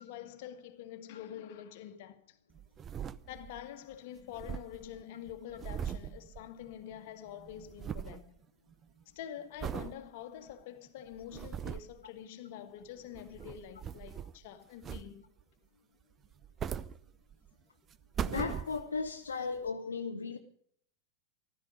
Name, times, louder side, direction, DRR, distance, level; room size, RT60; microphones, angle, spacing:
voice 1, 0.0-2.4 3.3-8.3 9.1-15.2 19.4-19.5, left 10 dB, 50° left, 1.7 m, -46 dB
sound 1, 2.5-3.7 3.9-7.0 7.3-8.3 8.7-9.0 9.6-10.0 10.5-10.6 11.1-12.0 13.0-14.4 14.8-15.4 16.2-17.5 17.9-19.1 19.7-19.8, right 8 dB, 25° right, 0.6 m, -40 dB
voice 2, 18.2-20.4, left 4 dB, 70° left, 1.0 m, -36 dB
15.0 x 13.5 x 5.0 m
figure-of-eight pair, 90°, 0 cm